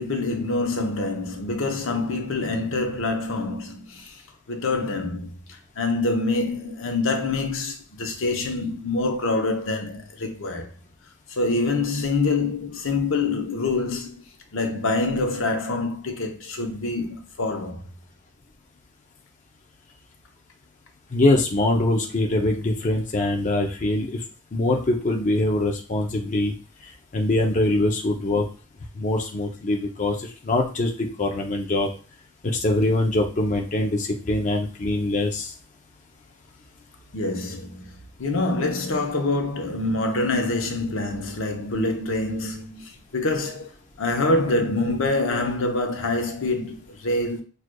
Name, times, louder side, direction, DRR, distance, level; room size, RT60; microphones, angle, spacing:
voice 1, 0.0-4.2 4.5-10.7 11.3-14.2 14.5-17.8 37.1-43.7 44.0-47.4, left 2 dB, 75° left, 0.7 m, -26 dB
voice 2, 21.1-24.2 24.5-26.5 27.1-28.5 29.0-31.9 32.4-35.5, left 2 dB, 40° left, 0.5 m, -23 dB
6.2 x 2.4 x 2.2 m
head